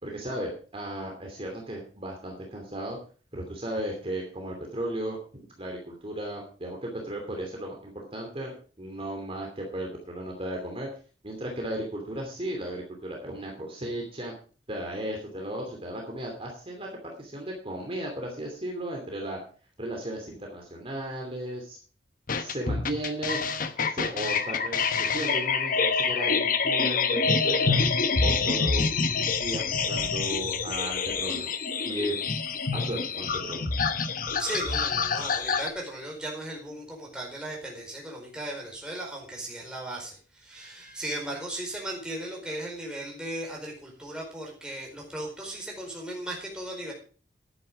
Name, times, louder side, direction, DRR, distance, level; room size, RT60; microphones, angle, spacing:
voice 1, 0.0-3.0 3.3-8.5 8.8-10.9 11.2-14.3 14.7-19.4 19.8-21.8 22.4-23.4 23.9-27.9 28.2-28.9 29.4-31.5 31.8-32.2 32.7-33.6, right 1 dB, 30° right, 1 dB, 2.8 m, -35 dB
sound 1, 22.3-35.7, left 5 dB, 50° left, 1.0 m, -27 dB
voice 2, 34.4-46.9, right 1 dB, 5° right, -2 dB, 4.7 m, -37 dB
11.5 x 9.8 x 4.9 m, 0.39 s
head